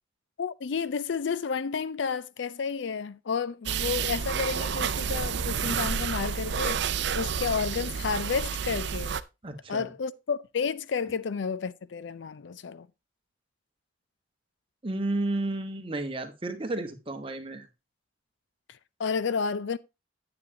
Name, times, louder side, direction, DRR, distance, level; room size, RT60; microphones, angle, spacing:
voice 1, 0.4-6.8 7.2-9.2 9.7-12.9 18.7-19.8, left 5 dB, 60° left, 0.4 m, -31 dB
sound 1, 3.7-9.2, right 7 dB, 60° right, 0.5 m, -30 dB
voice 2, 9.4-9.9 14.8-17.7, right 2 dB, 25° right, 1.1 m, -32 dB
9.4 x 8.7 x 2.8 m
head